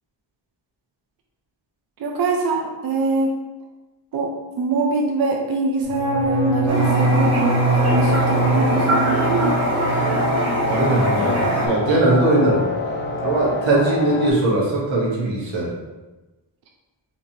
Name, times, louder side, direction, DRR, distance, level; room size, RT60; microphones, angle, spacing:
voice 1, 2.0-3.3 4.1-4.3 4.6-9.6, right 3 dB, 55° right, 1 dB, 0.5 m, -23 dB
sound 1, 5.8-11.8 12.1-12.6 12.8-13.2, right 2 dB, 75° left, 1.3 m, -24 dB
Toilet flush, 6.7-11.7, right 1 dB, 35° right, 0.9 m, -23 dB
sound 2, 7.8-14.3, left 3 dB, 25° left, 0.4 m, -27 dB
voice 2, 10.7-15.7, right 2 dB, 85° right, -4 dB, 1.3 m, -20 dB
4.2 x 3.0 x 2.7 m, 1.1 s
wide cardioid pair, 130°, 45 cm